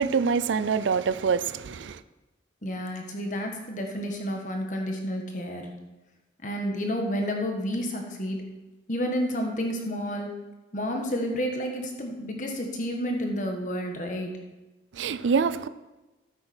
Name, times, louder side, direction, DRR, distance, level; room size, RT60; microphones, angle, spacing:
voice 1, 0.0-2.0 14.9-15.7, right 5 dB, 80° right, 0.4 m, -25 dB
voice 2, 2.6-5.7 6.4-8.4 8.9-10.3 10.7-14.3, equal, 40° left, 1.5 m, -30 dB
13.5 x 8.0 x 4.4 m
head